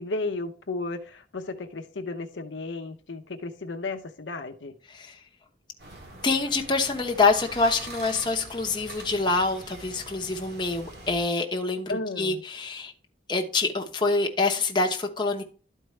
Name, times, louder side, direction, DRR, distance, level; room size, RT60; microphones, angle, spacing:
voice 1, 0.0-4.8 11.9-12.4, left 3 dB, 90° left, 7 dB, 0.7 m, -34 dB
sound 1, 5.8-11.2, right 2 dB, 60° right, 1.9 m, -44 dB
voice 2, 6.2-12.9 13.3-15.4, left 3 dB, 25° left, 2 dB, 0.9 m, -26 dB
12.0 x 4.5 x 3.2 m, 0.39 s
head